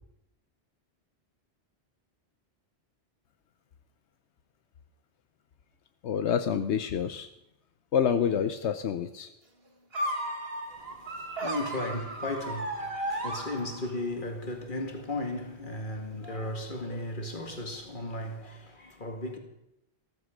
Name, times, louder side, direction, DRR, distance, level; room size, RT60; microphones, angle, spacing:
voice 1, 6.0-7.3 7.9-9.3, left 8 dB, 85° left, 1.0 m, -27 dB
sound 1, 9.9-14.1, right 1 dB, 65° right, 2.0 m, -34 dB
voice 2, 10.7-19.4, left 1 dB, 50° left, 2.2 m, -36 dB
15.0 x 14.5 x 5.2 m
omnidirectional pair, 1.1 m